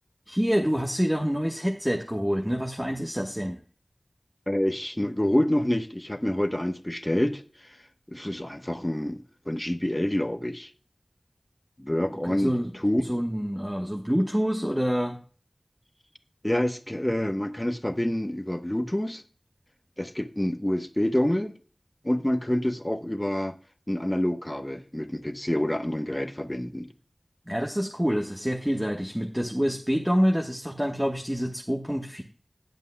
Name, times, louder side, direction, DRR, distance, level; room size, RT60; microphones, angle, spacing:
voice 1, 0.3-3.6 12.2-12.7 13.1-15.2 27.5-32.2, equal, 10° right, 1.2 m, -27 dB
voice 2, 4.5-7.8 8.1-10.7 11.8-13.0 16.4-19.2 20.0-21.5 22.0-23.5 23.9-26.9, left 1 dB, 20° left, 1.0 m, -27 dB
17.5 x 8.1 x 2.3 m
wide cardioid pair, 40°, 0 cm